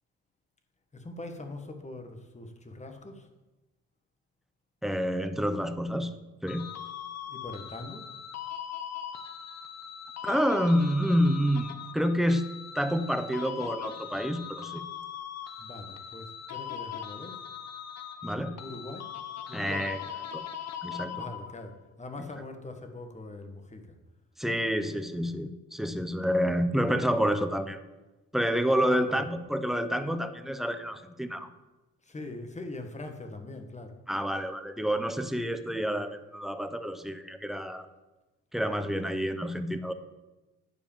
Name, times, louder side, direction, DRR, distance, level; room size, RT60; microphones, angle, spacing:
voice 1, 0.9-3.3 7.2-8.1 15.6-17.4 18.6-19.1 19.5-19.9 21.1-23.9 28.8-29.3 32.0-34.0, left 2 dB, 25° left, 5 dB, 1.4 m, -42 dB
voice 2, 4.8-6.1 6.4-6.7 10.2-12.5 12.7-14.8 18.2-18.5 19.5-20.0 20.3-20.4 20.8-21.2 24.4-27.8 28.3-31.5 34.1-37.9 38.5-39.9, equal, ahead, 9 dB, 0.7 m, -28 dB
sound 1, 6.5-21.7, left 9 dB, 60° left, 1.0 m, -40 dB
10.0 x 4.8 x 7.2 m, 1.1 s
cardioid pair, 90°, 30 cm